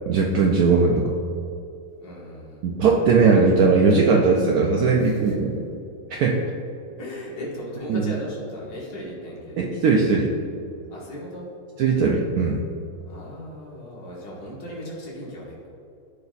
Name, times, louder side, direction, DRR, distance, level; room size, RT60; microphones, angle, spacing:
voice 1, 0.1-1.1 2.6-5.6 6.1-6.4 7.9-8.1 9.6-10.3 11.8-12.6, right 4 dB, 85° right, 0 dB, 0.8 m, -19 dB
voice 2, 2.0-2.6 5.0-5.3 7.0-9.6 10.9-11.5 13.1-15.7, left 1 dB, 55° left, -5 dB, 2.0 m, -37 dB
12.0 x 4.1 x 2.4 m, 2.7 s
omnidirectional pair, 2.2 m